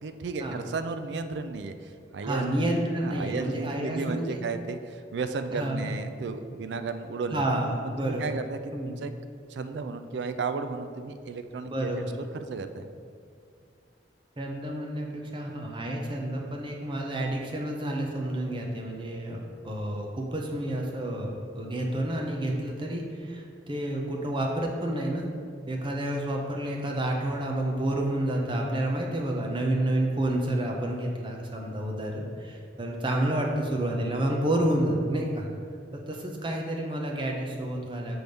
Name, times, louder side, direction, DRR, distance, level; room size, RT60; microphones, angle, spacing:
voice 1, 0.0-7.5 7.8-9.1 9.5-12.0 12.3-12.9, right 4 dB, 70° right, 10 dB, 0.4 m, -34 dB
voice 2, 2.2-4.4 5.6-5.9 7.3-8.4 8.7-9.1 11.7-12.1 14.4-25.3 25.7-35.5 35.9-38.2, right 1 dB, 25° right, 0 dB, 0.7 m, -29 dB
6.0 x 3.4 x 5.3 m, 2.2 s
head